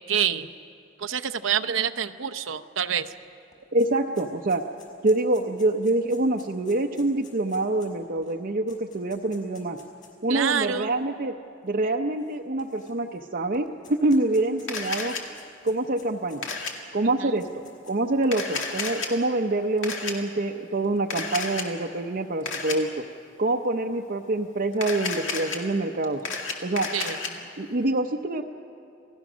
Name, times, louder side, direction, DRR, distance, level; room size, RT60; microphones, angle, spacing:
voice 1, 0.1-0.5 1.0-3.1 10.3-10.9 17.2-17.4 26.9-27.2, right 8 dB, 90° right, 8 dB, 0.7 m, -27 dB
sound 1, 3.0-3.1 3.3-10.2 11.0-11.1 12.2-13.2 13.5-16.8 17.2-18.1, left 6 dB, 40° left, 4.4 m, -54 dB
voice 2, 3.7-4.6 5.0-9.8 10.2-11.3 11.6-15.2 15.6-16.5 16.9-23.0 23.4-26.2 26.6-26.9 27.6-28.4, right 2 dB, 50° right, 1 dB, 0.7 m, -26 dB
Camera, 14.7-15.2 16.4-16.7 18.2-19.1 19.8-20.1 21.1-21.7 22.4-22.8 24.7-25.6 26.0-27.3, left 4 dB, 85° left, 2.2 m, -31 dB
28.0 x 17.0 x 6.2 m, 2.5 s
head